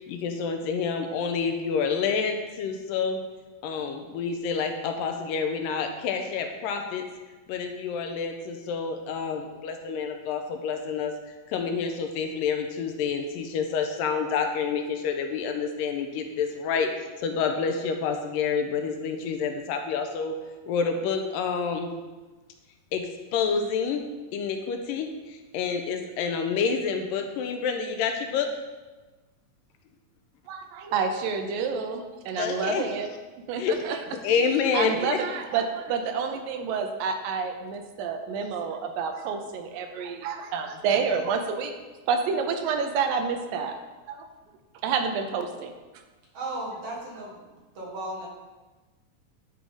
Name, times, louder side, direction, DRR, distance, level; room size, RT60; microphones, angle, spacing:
voice 1, 0.1-3.2 3.6-7.0 7.5-11.1 11.5-20.4 20.7-21.9 22.9-23.1 23.3-24.0 24.3-28.5 32.4-32.8 33.6-33.8 34.2-35.2, left 6 dB, 85° left, 5 dB, 2.3 m, -28 dB
voice 2, 30.5-33.1 33.5-34.0 34.3-34.4 34.7-41.7 42.1-43.8 44.1-44.3 44.8-45.7, right 6 dB, 80° right, 6 dB, 2.4 m, -29 dB
voice 3, 46.3-47.5 47.7-48.3, right 2 dB, 50° right, -4 dB, 2.2 m, -35 dB
10.0 x 4.7 x 3.9 m, 1.2 s
omnidirectional pair, 4.0 m